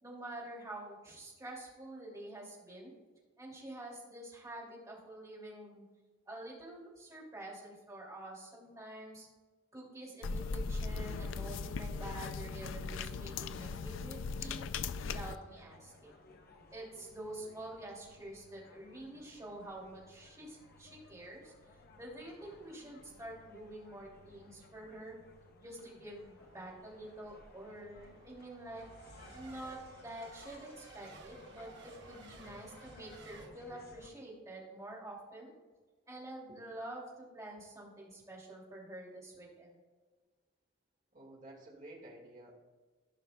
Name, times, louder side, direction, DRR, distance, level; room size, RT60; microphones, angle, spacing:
voice 1, 0.0-2.9 3.4-5.8 6.2-9.3 9.7-14.7 15.0-16.1 16.7-25.2 25.6-28.8 29.3-35.5 36.1-39.8, right 1 dB, 15° right, -4 dB, 2.5 m, -48 dB
sound 1, 10.2-15.4, left 4 dB, 70° left, 0.4 m, -38 dB
sound 2, 15.3-34.1, left 2 dB, 50° left, 0.9 m, -59 dB
Race car auto racing / Accelerating revving vroom / Mechanisms, 25.6-33.5, right 3 dB, 60° right, 1.0 m, -57 dB
voice 2, 41.1-42.6, right 1 dB, 40° right, -1 dB, 1.9 m, -52 dB
15.0 x 5.7 x 2.3 m, 1.4 s
head